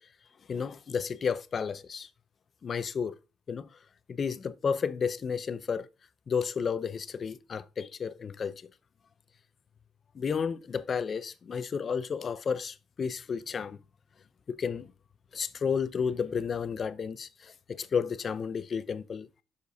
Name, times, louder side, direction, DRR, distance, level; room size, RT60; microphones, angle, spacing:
voice 1, 0.5-2.1 2.6-3.1 3.5-3.7 4.1-5.9 6.3-8.7 10.1-13.8 14.5-14.9 15.3-19.3, left 6 dB, 30° left, 0.4 m, -32 dB
8.0 x 6.5 x 2.6 m
cardioid pair, 170°, 0 cm